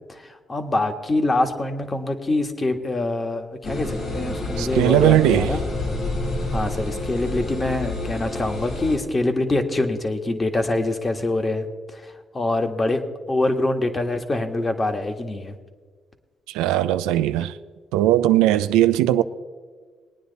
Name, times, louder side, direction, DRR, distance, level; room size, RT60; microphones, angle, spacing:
voice 1, 0.1-5.6 6.5-11.6 11.9-13.0 13.3-15.5, left 2 dB, 35° left, 1.5 m, -24 dB
sound 1, 3.6-9.0, left 2 dB, 65° left, 3.5 m, -28 dB
voice 2, 4.6-5.5 16.5-17.5 17.9-19.2, right 13 dB, 90° right, 0.4 m, -18 dB
20.5 x 9.5 x 4.1 m
supercardioid pair, 55°, 0 cm